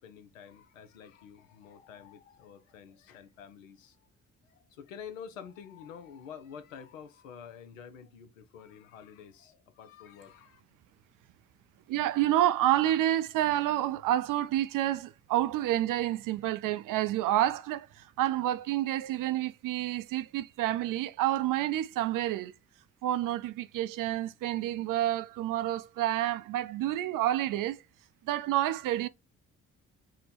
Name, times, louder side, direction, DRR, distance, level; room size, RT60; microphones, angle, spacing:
voice 1, 0.0-3.9 4.5-10.6, left 7 dB, 90° left, 0.5 m, -48 dB
voice 2, 11.9-22.5 23.0-27.8 28.2-29.1, right 13 dB, 60° right, 0.5 m, -29 dB
3.7 x 2.1 x 4.1 m
hypercardioid pair, 45°, 38 cm